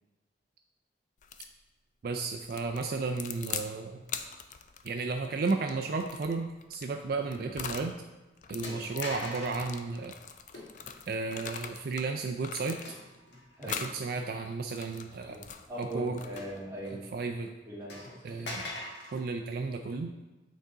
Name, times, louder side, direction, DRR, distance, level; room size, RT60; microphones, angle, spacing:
sound 1, 1.2-1.6 2.4-3.7 4.1-7.9 8.4-12.1 12.4-13.2 13.6-14.0 14.5-16.6, left 7 dB, 45° left, 0.4 m, -42 dB
voice 1, 2.0-4.0 4.8-7.9 8.5-10.1 11.1-12.8 13.8-15.4 15.8-16.2 17.1-17.5 18.2-18.7 19.1-20.1, right 4 dB, 55° right, 4 dB, 0.4 m, -33 dB
sound 2, 7.2-7.4 7.7-7.8 8.6-9.7 10.5-11.0 12.8-13.6 14.2-14.3 16.4-17.1 17.4-17.5 17.9-19.2, left 2 dB, 90° left, 1.3 m, -43 dB
voice 2, 8.6-9.1 13.6-13.9 15.3-17.0 17.6-18.5, equal, 15° right, -6 dB, 1.6 m, -42 dB
8.5 x 3.9 x 3.6 m, 1.1 s
head